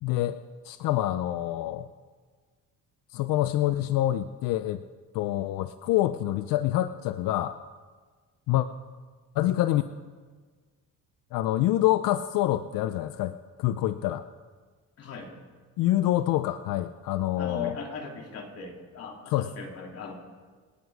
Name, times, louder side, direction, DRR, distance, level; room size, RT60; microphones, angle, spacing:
voice 1, 0.0-0.4 0.6-1.9 3.1-4.8 5.1-7.6 8.5-8.7 9.4-9.8 11.3-14.3 15.8-17.8 19.3-19.5, left 14 dB, 90° left, 11 dB, 0.6 m, -26 dB
voice 2, 15.0-15.3 17.4-20.1, left 4 dB, 50° left, 0 dB, 3.1 m, -39 dB
27.0 x 9.7 x 4.8 m, 1.5 s
cardioid pair, 140°, 32 cm